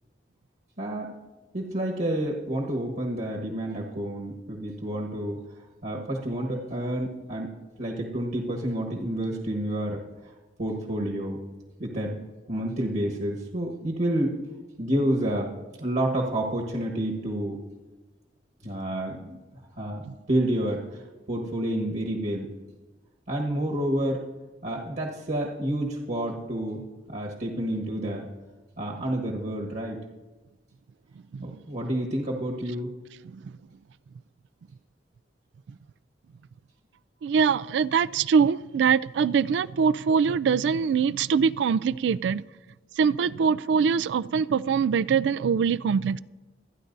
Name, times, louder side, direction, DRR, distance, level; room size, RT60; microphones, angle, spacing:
voice 1, 0.8-1.1 1.5-5.4 5.8-7.5 7.8-10.0 10.6-11.4 11.8-12.2 12.5-14.4 14.8-15.5 15.8-17.6 18.6-19.4 19.8-20.0 20.3-21.0 21.3-22.5 23.3-24.2 24.6-28.3 28.8-30.0 31.4-32.9, right 1 dB, 55° right, -1 dB, 1.4 m, -29 dB
voice 2, 37.2-42.4 43.0-46.2, right 6 dB, 75° right, 17 dB, 0.3 m, -23 dB
25.0 x 10.0 x 2.7 m, 1.2 s
head